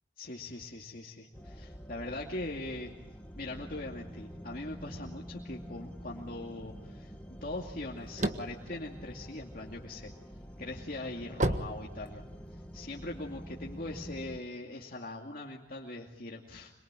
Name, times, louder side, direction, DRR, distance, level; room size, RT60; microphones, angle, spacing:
voice 1, 0.2-2.9 3.4-10.1 10.6-12.2 12.7-16.7, left 2 dB, 50° left, -1 dB, 2.5 m, -41 dB
sound 1, 1.3-14.4, equal, 10° left, 1.6 m, -47 dB
sound 2, 7.7-9.9 10.4-12.6, right 1 dB, 40° right, 1.5 m, -33 dB
26.5 x 23.5 x 9.0 m, 0.93 s
head